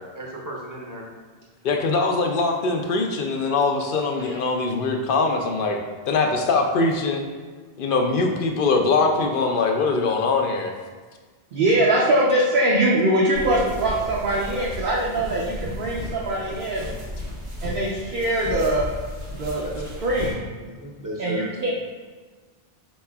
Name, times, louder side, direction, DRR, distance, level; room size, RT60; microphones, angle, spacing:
voice 1, 0.1-1.1 19.6-19.7 20.6-21.6, right 1 dB, 25° right, -3 dB, 0.6 m, -34 dB
voice 2, 1.6-5.8 6.1-7.2 7.8-10.7, left 3 dB, 65° left, 3 dB, 0.7 m, -22 dB
voice 3, 11.5-16.9 17.6-18.9 19.3-20.4 21.2-21.7, right 1 dB, 65° right, -5 dB, 0.8 m, -22 dB
sound 1, 13.3-20.3, left 1 dB, 85° right, 1.2 m, -34 dB
4.7 x 4.1 x 2.2 m, 1.4 s
omnidirectional pair, 1.0 m